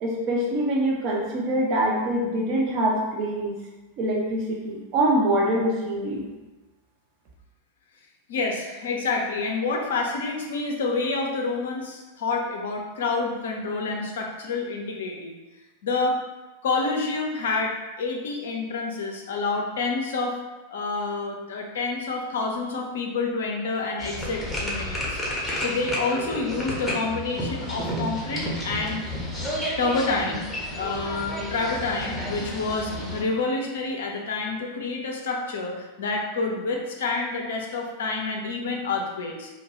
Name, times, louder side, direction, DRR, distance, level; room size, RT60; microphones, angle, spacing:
voice 1, 0.0-3.6 4.0-6.2, right 1 dB, 40° right, -2 dB, 0.6 m, -24 dB
voice 2, 8.3-15.3 15.8-16.2 16.6-20.4 20.7-25.2 25.6-29.0 29.4-29.5 29.8-30.4 30.7-39.5, left 3 dB, 60° left, 1 dB, 0.4 m, -28 dB
sound 1, 24.0-33.2, equal, 5° left, 0.7 m, -31 dB
2.5 x 2.2 x 3.0 m, 1.2 s
figure-of-eight pair, 90°, 0 cm